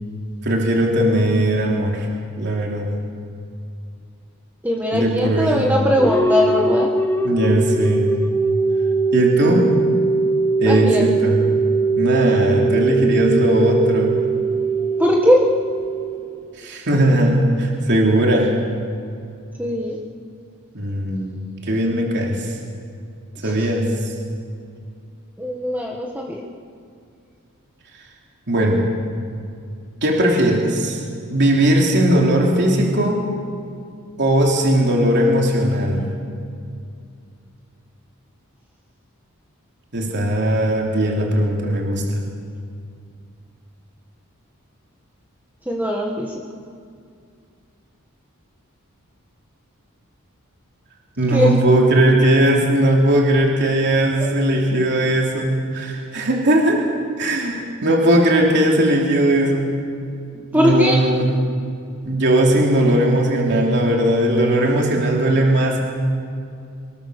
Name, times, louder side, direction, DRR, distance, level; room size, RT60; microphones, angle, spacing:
voice 1, 0.4-2.1 2.4-2.9 4.9-5.7 7.2-8.1 9.1-9.7 10.6-11.4 12.0-14.2 16.6-18.5 20.7-22.5 23.4-24.1 28.5-28.9 30.0-31.0 31.3-33.2 34.2-36.0 39.9-42.0 51.2-56.9 57.2-59.7 60.5-61.3 62.0-65.8, right 1 dB, 50° right, -1 dB, 3.2 m, -18 dB
voice 2, 4.6-6.9 10.6-11.1 15.0-15.4 19.6-20.0 23.4-23.5 25.4-26.4 45.7-46.3 51.3-51.7 60.5-61.0, left 1 dB, 10° right, -1 dB, 1.6 m, -19 dB
sound 1, 6.0-16.7, right 3 dB, 10° left, 1.0 m, -20 dB
24.5 x 21.0 x 6.9 m, 2.4 s
head